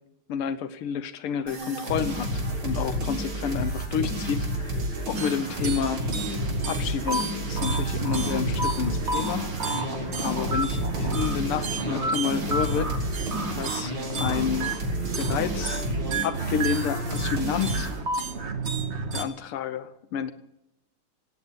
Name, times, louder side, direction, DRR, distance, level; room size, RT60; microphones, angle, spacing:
voice 1, 0.3-2.3 2.6-4.8 5.1-6.0 6.3-9.8 10.2-13.0 13.6-14.8 15.2-15.8 16.2-17.9 19.1-20.3, left 8 dB, 85° left, 13 dB, 1.7 m, -30 dB
sound 1, 1.5-18.0, equal, 65° right, 4.2 m, -30 dB
sound 2, 5.1-19.2, right 3 dB, 35° right, 1.5 m, -31 dB
17.5 x 9.4 x 7.7 m, 0.85 s
omnidirectional pair, 2.4 m